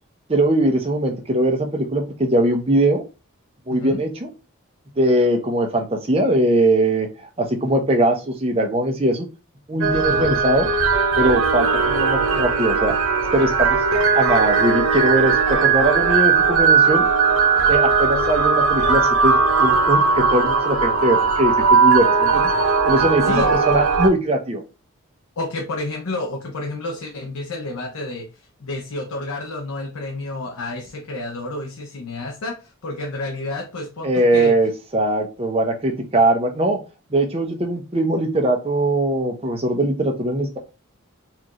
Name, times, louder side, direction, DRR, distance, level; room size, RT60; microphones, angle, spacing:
voice 1, 0.3-3.0 3.7-4.3 5.0-9.3 9.7-10.7 11.2-13.0 13.3-13.8 14.1-17.1 17.7-22.5 22.9-24.6 34.0-36.8 37.1-40.6, right 1 dB, 25° right, 3 dB, 0.6 m, -20 dB
voice 2, 3.7-4.0 10.1-10.4 23.2-23.7 25.4-28.3 28.6-34.6, left 2 dB, 80° left, 2 dB, 0.6 m, -30 dB
sound 1, 9.8-24.1, right 5 dB, 75° right, 0.8 m, -18 dB
4.4 x 2.4 x 2.9 m, 0.30 s
head